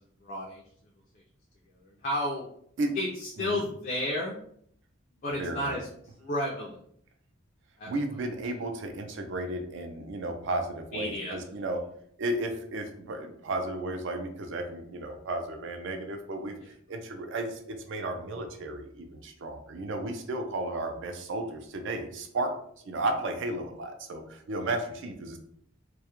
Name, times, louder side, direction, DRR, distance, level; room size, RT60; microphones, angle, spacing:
voice 1, 0.2-0.6 2.0-2.4 3.0-4.4 5.2-5.9 6.2-6.8 7.8-7.9 10.9-11.4, left 1 dB, 40° left, -3 dB, 0.3 m, -31 dB
voice 2, 5.4-5.8 7.9-11.8 12.2-16.6 16.9-22.5 22.9-25.4, right 2 dB, 60° right, 5 dB, 0.4 m, -33 dB
2.2 x 2.0 x 2.9 m, 0.66 s
head